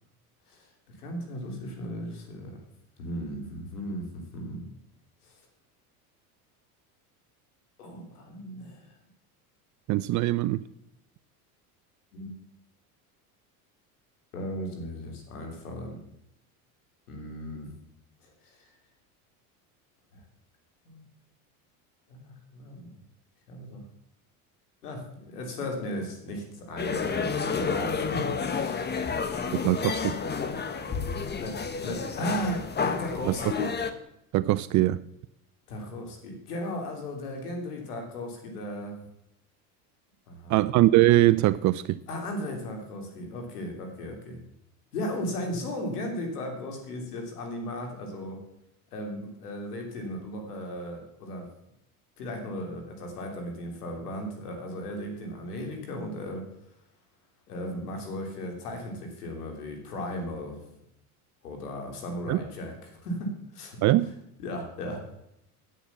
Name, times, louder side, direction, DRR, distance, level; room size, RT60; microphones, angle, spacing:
voice 1, 1.0-2.6 3.0-4.7 5.2-5.3 7.8-8.9 12.1-12.3 14.3-16.0 17.1-17.8 18.2-18.7 20.1-20.2 20.9-21.1 22.1-23.0 23.5-23.8 24.8-29.2 31.4-33.7 35.7-39.0 40.3-40.6 42.1-44.4 44.9-48.4 48.9-51.5 52.2-56.4 57.5-60.6 61.4-63.8 64.4-65.0, left 1 dB, 90° left, 3 dB, 3.3 m, -36 dB
voice 2, 9.9-10.6 29.6-30.1 34.3-35.0 40.5-42.0 62.3-62.4 63.8-64.1, right 16 dB, 40° right, 15 dB, 0.5 m, -22 dB
sound 1, 26.8-33.9, left 5 dB, 20° left, 1.2 m, -30 dB
9.9 x 8.3 x 7.0 m, 0.80 s
supercardioid pair, 100°, 45 cm